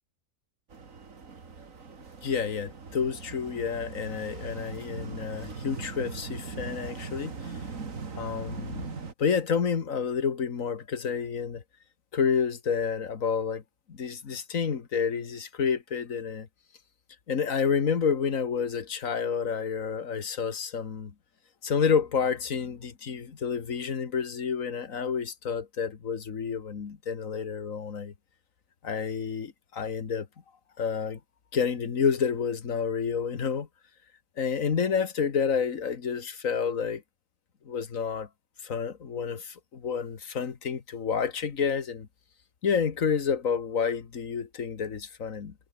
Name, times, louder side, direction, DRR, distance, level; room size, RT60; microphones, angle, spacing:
sound 1, 0.7-9.1, right 5 dB, 75° right, 2.6 m, -40 dB
voice 1, 2.2-7.6 8.2-11.6 12.1-13.6 13.9-16.5 17.3-21.1 21.6-28.1 28.8-30.3 30.8-31.2 31.5-33.7 34.4-37.0 37.7-38.3 38.6-42.1 42.6-45.5, left 6 dB, 75° left, 2.0 m, -29 dB
omnidirectional pair, 1.4 m